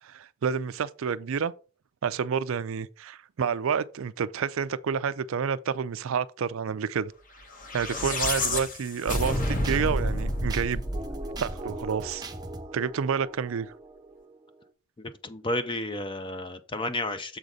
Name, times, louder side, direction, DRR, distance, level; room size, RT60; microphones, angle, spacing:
voice 1, 0.0-1.5 2.0-7.1 7.7-10.8 11.4-12.2 12.7-13.7, right 6 dB, 65° right, 0.4 m, -29 dB
sound 1, 7.5-11.9, left 1 dB, 40° left, 1.2 m, -29 dB
sound 2, 9.1-14.6, right 2 dB, 20° right, 0.7 m, -40 dB
voice 2, 15.0-17.4, left 1 dB, 25° left, 0.5 m, -32 dB
7.2 x 4.0 x 4.9 m
head